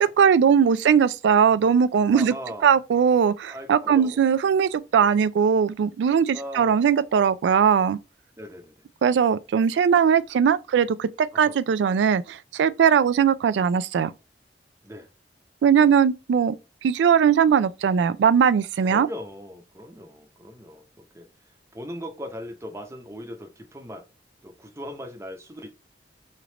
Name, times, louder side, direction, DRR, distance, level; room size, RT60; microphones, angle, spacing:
voice 1, 0.0-2.3 2.6-8.0 9.0-14.1 15.6-16.6 16.8-19.1, right 7 dB, 75° right, 0.3 m, -20 dB
voice 2, 2.1-2.7 3.5-4.2 6.3-6.9 8.4-8.8 11.3-11.6 14.8-15.1 18.9-21.3 21.7-24.0 24.4-25.7, equal, 15° right, 0.7 m, -39 dB
3.2 x 2.4 x 2.9 m
head